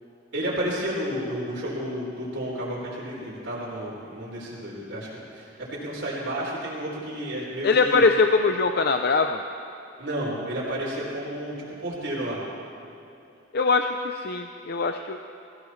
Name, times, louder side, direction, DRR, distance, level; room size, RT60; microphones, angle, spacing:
voice 1, 0.3-8.0 10.0-12.4, equal, 75° right, -7 dB, 4.3 m, -31 dB
voice 2, 7.6-9.4 13.5-15.2, left 4 dB, 55° left, 6 dB, 0.5 m, -22 dB
22.0 x 16.0 x 3.2 m, 2.7 s
head